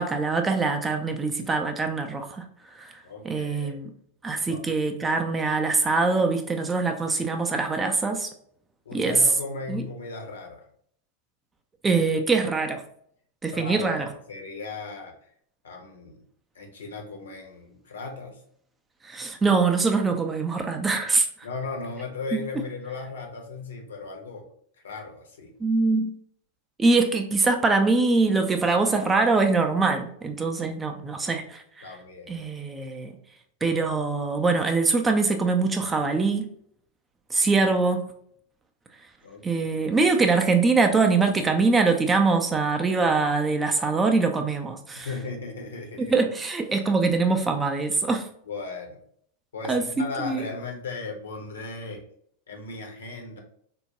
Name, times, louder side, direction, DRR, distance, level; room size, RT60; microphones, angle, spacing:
voice 1, 0.0-2.4 2.7-3.9 4.2-8.3 8.9-9.2 9.7-9.8 11.8-12.8 13.4-14.1 19.0-21.3 22.3-22.4 25.6-26.1 26.8-31.9 32.3-33.1 33.6-36.5 37.3-38.1 39.4-45.1 46.0-48.3 49.7-50.5, right 3 dB, 15° right, 5 dB, 0.4 m, -23 dB
voice 2, 3.0-3.8 4.5-4.6 8.8-10.6 13.5-15.1 15.6-16.2 16.5-18.4 21.4-24.4 24.8-25.5 31.8-32.4 39.2-39.5 44.9-46.1 48.5-49.0 49.5-52.0 52.5-53.4, left 3 dB, 65° left, 2 dB, 0.7 m, -36 dB
3.6 x 2.1 x 2.9 m, 0.65 s
figure-of-eight pair, 90°, 0 cm